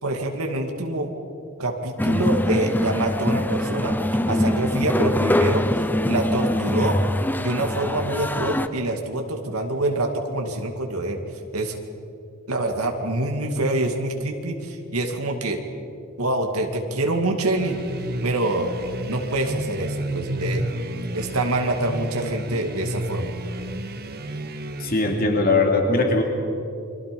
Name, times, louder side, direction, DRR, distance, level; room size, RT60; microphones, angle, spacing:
voice 1, 0.0-1.1 1.6-3.9 4.3-7.0 7.4-11.2 11.5-11.8 12.5-15.6 16.2-17.8 18.2-18.7 19.1-20.6 21.1-23.3, right 1 dB, 80° right, 3 dB, 2.2 m, -25 dB
sound 1, 2.0-8.7, left 1 dB, 10° left, 0.7 m, -23 dB
sound 2, 17.5-25.3, right 1 dB, 45° right, 1.5 m, -31 dB
voice 2, 24.8-26.2, left 3 dB, 45° left, 2 dB, 3.0 m, -20 dB
29.5 x 23.5 x 5.3 m, 2.6 s
head